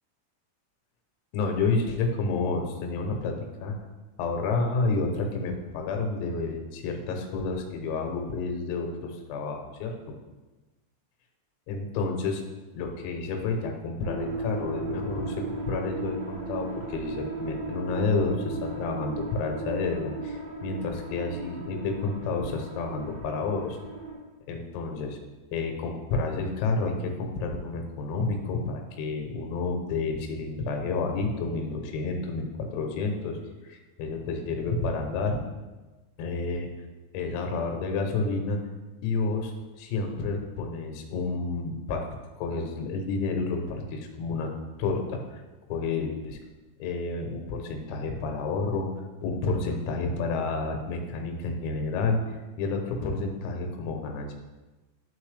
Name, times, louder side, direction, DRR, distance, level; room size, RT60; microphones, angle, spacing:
voice 1, 1.3-3.8 4.2-10.2 11.7-12.4 12.8-23.8 24.5-25.2 25.5-35.4 36.2-36.7 37.1-38.6 39.0-39.5 39.8-42.0 42.4-44.5 44.8-45.4 45.7-46.4 46.8-54.3, left 3 dB, 90° left, 3 dB, 3.6 m, -30 dB
sound 1, 14.0-24.1, right 3 dB, 80° right, 4.4 m, -36 dB
11.5 x 3.9 x 3.2 m, 1.2 s
omnidirectional pair, 5.9 m